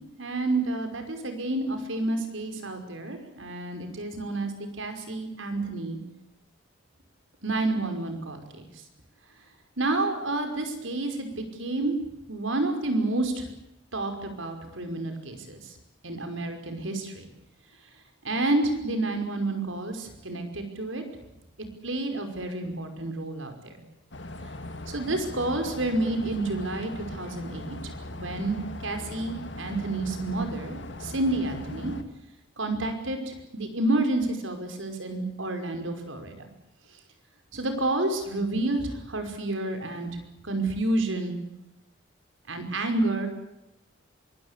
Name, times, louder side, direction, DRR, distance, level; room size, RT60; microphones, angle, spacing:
voice 1, 0.2-4.5 4.8-6.0 7.4-8.6 9.8-12.0 12.3-13.4 13.9-15.6 16.0-17.3 18.2-21.0 21.8-23.7 24.9-27.9 28.2-31.9 32.6-36.5 37.5-40.1 40.4-41.4 42.5-43.3, right 2 dB, 80° right, 6 dB, 5.4 m, -29 dB
sound 1, 24.1-32.0, left 1 dB, 65° left, 2.3 m, -39 dB
24.0 x 21.5 x 8.4 m, 0.87 s
head